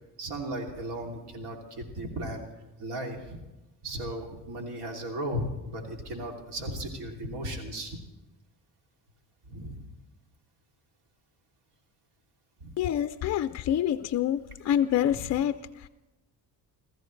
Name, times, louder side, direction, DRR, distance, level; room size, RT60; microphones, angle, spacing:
voice 1, 0.2-2.5 2.8-3.4 3.8-8.0 9.5-9.8 12.6-12.7 15.1-15.2, right 1 dB, 75° right, 2 dB, 2.9 m, -36 dB
voice 2, 12.8-15.9, left 10 dB, 40° left, 11 dB, 0.4 m, -27 dB
29.5 x 14.0 x 3.2 m, 1.0 s
cardioid pair, 145°, 41 cm